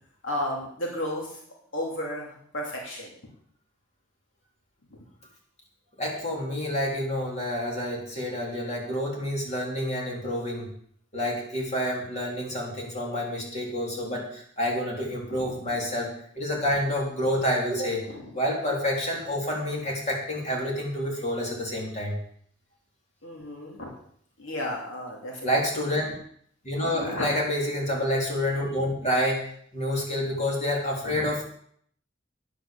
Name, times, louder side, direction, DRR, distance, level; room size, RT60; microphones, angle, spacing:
voice 1, 0.2-1.4 1.7-3.1 15.3-15.5 18.0-18.3 23.2-23.9 24.4-25.6 26.9-27.3 31.0-31.3, left 1 dB, 70° left, -2 dB, 2.8 m, -33 dB
voice 2, 6.0-10.7 11.1-18.0 18.3-22.2 25.4-26.1 26.6-29.5 29.7-31.4, left 1 dB, 35° left, -2 dB, 3.9 m, -28 dB
10.5 x 9.4 x 6.9 m, 0.63 s
head